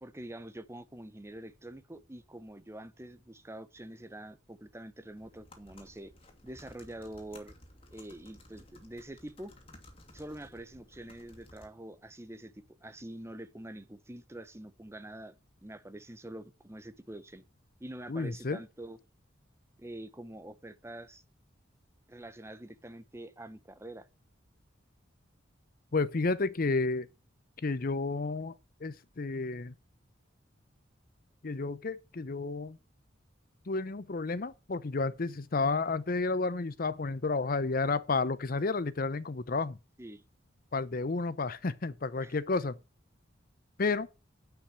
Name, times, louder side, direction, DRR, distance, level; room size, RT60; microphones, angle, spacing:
voice 1, 0.0-6.1 6.4-7.5 7.9-9.5 10.1-15.3 15.6-17.4 17.8-19.0 19.8-21.2 22.1-24.1 40.0-40.2 42.2-42.4, right 1 dB, 15° right, 0.8 m, -46 dB
sound 1, 5.2-11.7, left 1 dB, 30° left, 2.5 m, -56 dB
voice 2, 18.1-18.6 25.9-27.1 27.6-28.5 28.8-29.7 31.4-32.8 33.7-39.8 40.7-42.8 43.8-44.1, left 3 dB, 50° left, 0.6 m, -31 dB
9.8 x 5.9 x 7.6 m
head